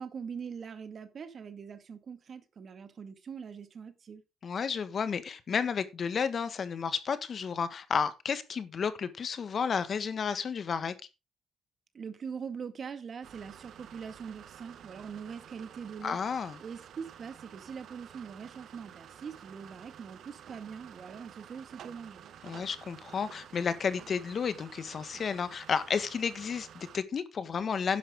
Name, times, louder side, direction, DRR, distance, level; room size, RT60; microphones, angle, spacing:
voice 1, 0.0-4.2 11.9-16.2 16.6-22.2, right 6 dB, 50° right, 1.9 m, -42 dB
voice 2, 4.4-10.9 16.0-16.6 22.4-28.0, left 6 dB, 50° left, 1.6 m, -32 dB
sound 1, 13.2-27.0, right 9 dB, 70° right, 1.3 m, -51 dB
11.5 x 10.5 x 3.7 m
cardioid pair, 90°, 0 cm